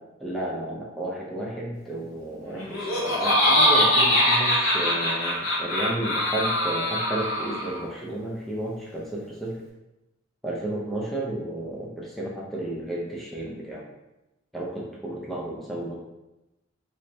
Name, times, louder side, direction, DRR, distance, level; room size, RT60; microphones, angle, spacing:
voice 1, 0.2-9.6 10.4-13.8 14.5-16.0, right 1 dB, ahead, -5 dB, 0.4 m, -32 dB
Laughter, 2.6-7.8, equal, 85° left, 1.0 m, -22 dB
4.2 x 2.0 x 3.2 m, 0.98 s
head